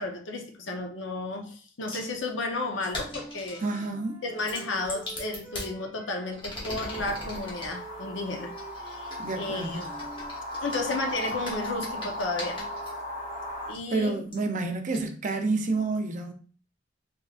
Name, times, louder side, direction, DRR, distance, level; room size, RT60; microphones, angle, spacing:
voice 1, 0.0-3.6 4.2-8.5 8.8-9.9 10.6-12.6 13.7-14.2, left 2 dB, 85° left, 0.7 m, -33 dB
sound 1, 1.9-2.1 2.8-3.7 4.4-5.7 6.3-7.7 8.5-12.9 13.7-13.8 14.3-14.4 14.9-15.0, left 1 dB, 25° left, 1.2 m, -40 dB
Wind instrument woodwind instrument, 3.0-6.4 6.7-11.2, right 3 dB, 5° left, 0.8 m, -48 dB
voice 2, 3.6-4.2 9.2-9.9 13.9-16.3, right 3 dB, 40° right, 0.5 m, -29 dB
sound 2, 6.8-13.7, equal, 45° left, 0.8 m, -37 dB
3.5 x 3.1 x 2.4 m
head